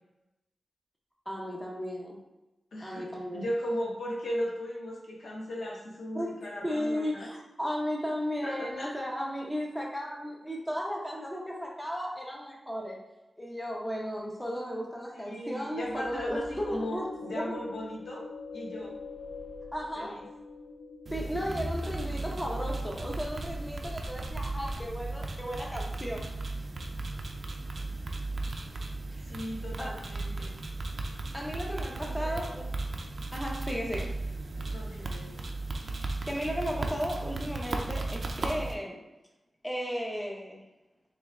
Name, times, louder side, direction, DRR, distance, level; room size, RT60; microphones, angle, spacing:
voice 1, 1.3-2.2 2.8-3.5 6.1-6.3 6.6-13.0 13.4-17.6 19.7-20.2 21.1-26.2 29.1-29.2 29.8-29.9 31.3-32.7 33.3-34.1 35.9-39.0 39.6-40.7, equal, 5° left, -2 dB, 0.6 m, -35 dB
voice 2, 2.7-3.1 3.3-7.3 8.4-8.9 15.1-18.2 18.5-18.9 19.9-20.2 29.3-30.6 32.0-32.4 34.7-35.4, equal, 90° left, -4 dB, 1.1 m, -37 dB
sound 1, 15.8-23.2, left 3 dB, 65° left, 0.5 m, -44 dB
sound 2, 21.1-38.7, right 2 dB, 45° right, 0.4 m, -36 dB
3.3 x 3.1 x 3.5 m, 0.98 s
wide cardioid pair, 180°, 0 cm